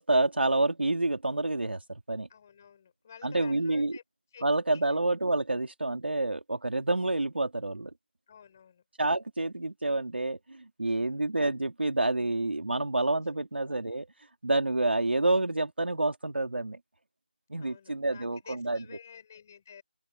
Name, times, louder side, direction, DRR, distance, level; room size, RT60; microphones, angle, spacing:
voice 1, 0.0-2.3 3.2-4.0 4.4-7.9 9.0-14.1 14.4-16.8 17.5-18.8, right 2 dB, 85° right, 3.2 m, -28 dB
voice 2, 2.3-4.0 4.3-4.4 4.7-5.0 8.3-8.8 10.8-11.3 13.2-13.4 17.6-19.8, left 7 dB, 15° left, 5.7 m, -52 dB
open air
figure-of-eight pair, 180°, 6 cm